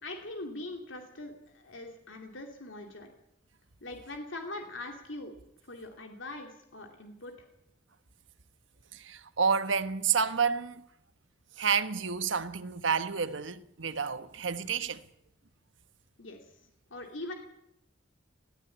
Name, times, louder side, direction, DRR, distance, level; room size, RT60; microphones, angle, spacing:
voice 1, 0.0-3.1 3.8-5.3 5.7-7.3 16.2-16.4 16.9-17.3, left 2 dB, 90° left, 2.9 m, -42 dB
voice 2, 8.9-10.8 11.6-15.0, right 6 dB, 80° right, 1.2 m, -29 dB
19.5 x 15.5 x 9.9 m
head